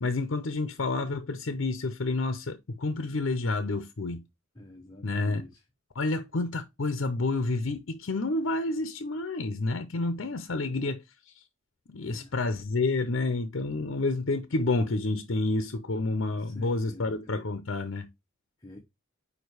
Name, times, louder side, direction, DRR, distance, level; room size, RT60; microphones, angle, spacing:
voice 1, 0.0-4.2 5.0-5.4 5.9-11.4 11.9-18.1, left 2 dB, 65° left, 0.7 m, -29 dB
voice 2, 4.6-5.5 12.0-12.3 16.2-17.4 18.6-18.8, left 1 dB, 20° left, 1.0 m, -47 dB
5.0 x 4.7 x 4.7 m
head